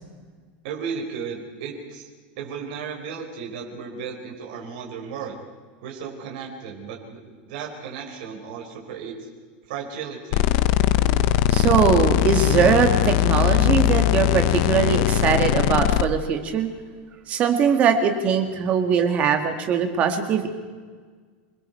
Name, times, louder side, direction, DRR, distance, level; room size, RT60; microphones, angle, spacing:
voice 1, 0.6-2.1 2.4-5.4 5.8-9.3 9.7-10.5, right 6 dB, 55° right, 0 dB, 4.2 m, -35 dB
sound 1, 10.3-16.0, left 13 dB, 45° left, 0.7 m, -20 dB
voice 2, 11.5-16.7 17.3-20.5, right 7 dB, 25° right, 6 dB, 2.0 m, -21 dB
28.0 x 20.5 x 4.6 m, 1.6 s
supercardioid pair, 175°, 5 cm